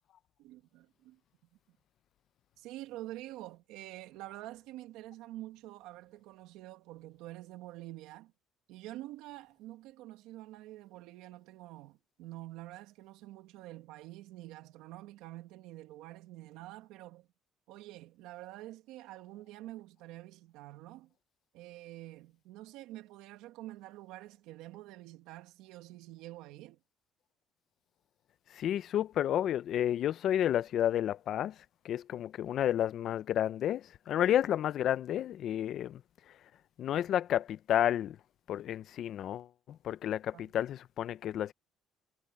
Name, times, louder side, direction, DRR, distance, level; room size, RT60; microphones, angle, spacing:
voice 1, 0.4-1.2 1.7-1.8 2.6-8.3 8.7-17.3 17.7-21.1 21.5-26.8 40.3-40.5, right 16 dB, 90° right, 2.1 m, -47 dB
voice 2, 28.5-31.5 31.8-36.0 36.8-38.2 38.5-41.5, left 11 dB, 60° left, 0.6 m, -31 dB
cardioid pair, 115°, 0 cm